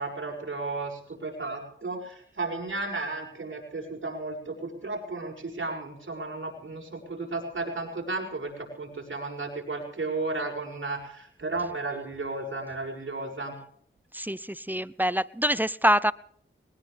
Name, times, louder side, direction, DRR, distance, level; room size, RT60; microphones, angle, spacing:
voice 1, 0.0-13.5, right 3 dB, 65° right, 0 dB, 6.4 m, -34 dB
voice 2, 14.7-16.1, equal, 10° right, 19 dB, 0.6 m, -24 dB
20.5 x 20.0 x 3.5 m, 0.65 s
wide cardioid pair, 55°, 21 cm